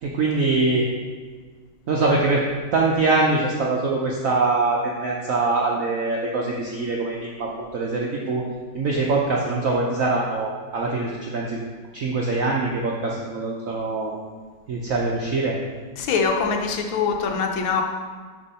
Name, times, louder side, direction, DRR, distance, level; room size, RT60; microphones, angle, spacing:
voice 1, 0.0-0.9 1.9-2.4 2.7-8.4 8.7-11.6 11.9-14.1 14.7-15.6, right 3 dB, 75° right, -2 dB, 0.7 m, -23 dB
voice 2, 16.0-17.8, left 5 dB, 85° left, 3 dB, 1.5 m, -23 dB
6.8 x 3.6 x 5.5 m, 1.5 s
omnidirectional pair, 2.2 m